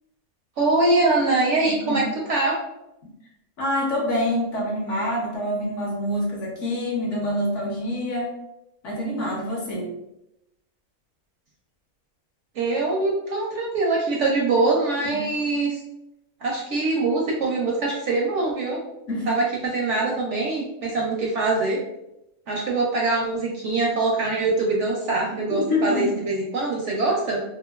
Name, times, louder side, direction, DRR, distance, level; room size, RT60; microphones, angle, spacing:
voice 1, 0.6-2.6 12.5-15.8 16.4-18.8 19.3-21.8 22.5-27.4, right 3 dB, 65° right, -2 dB, 0.7 m, -23 dB
voice 2, 3.6-8.3 8.8-9.9 19.1-19.3 25.3-26.1, left 1 dB, 60° left, -2 dB, 0.9 m, -26 dB
2.9 x 2.5 x 2.2 m, 0.87 s
omnidirectional pair, 1.6 m